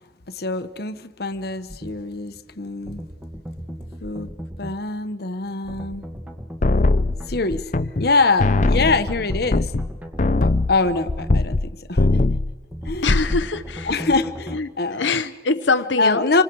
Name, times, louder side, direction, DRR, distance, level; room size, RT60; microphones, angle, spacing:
voice 1, 0.3-3.0 4.0-4.3 4.6-6.1 7.3-7.7 8.0-9.7 10.4-12.2 12.8-13.3 13.8-15.2 16.0-16.4, left 3 dB, 60° left, 11 dB, 1.1 m, -24 dB
sound 1, 1.7-1.9 2.9-4.8 5.7-7.5 8.5-10.4 10.8-11.4 12.7-14.6, equal, 10° right, 1.9 m, -36 dB
sound 2, 6.6-8.1 8.4-11.7 12.0-12.5 12.9-13.4, left 2 dB, 45° left, 0.6 m, -20 dB
voice 2, 13.0-13.9 14.5-14.7 15.0-16.3, left 4 dB, 85° left, 10 dB, 0.8 m, -23 dB
28.0 x 24.5 x 4.7 m, 1.3 s
head